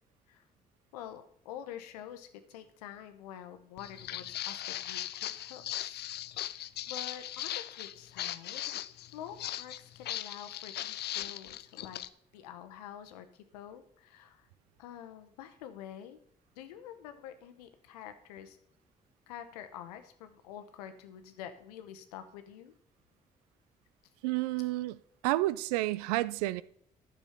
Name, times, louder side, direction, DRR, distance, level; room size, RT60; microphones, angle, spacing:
voice 1, 0.9-6.1 6.4-8.6 9.1-12.0 12.3-14.5 14.8-16.2 16.6-18.6 19.3-22.7 24.6-24.9, left 10 dB, 85° left, 0.9 m, -47 dB
Walk footsteps, 3.8-12.1, left 13 dB, 60° left, 0.5 m, -39 dB
voice 2, 24.2-25.0 25.2-26.6, right 17 dB, 85° right, 0.4 m, -30 dB
10.5 x 6.3 x 5.7 m
hypercardioid pair, 45°, 19 cm